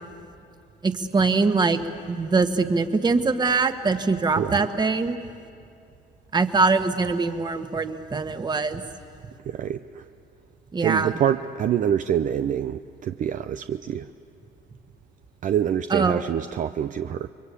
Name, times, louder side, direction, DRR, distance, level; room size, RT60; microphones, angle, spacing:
voice 1, 0.8-1.8 2.1-5.2 6.3-8.8 10.7-11.1 15.9-16.2, right 4 dB, 25° right, 8 dB, 1.5 m, -23 dB
voice 2, 9.5-10.0 10.8-14.1 15.4-17.3, right 9 dB, 50° right, 9 dB, 0.6 m, -26 dB
29.5 x 23.0 x 8.4 m, 2.4 s
cardioid pair, 110°, 17 cm